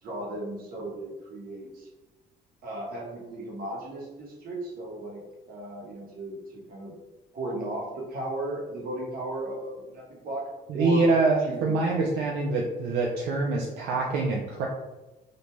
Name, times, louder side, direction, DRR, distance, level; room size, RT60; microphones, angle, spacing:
voice 1, 0.0-1.9 2.6-5.2 5.5-6.9 7.3-10.5 10.7-11.1 11.4-11.8, right 1 dB, 60° right, -2 dB, 1.0 m, -35 dB
voice 2, 10.7-14.7, right 3 dB, 80° right, -1 dB, 0.4 m, -25 dB
2.6 x 2.2 x 3.0 m, 1.1 s
cardioid pair, 110°, 17 cm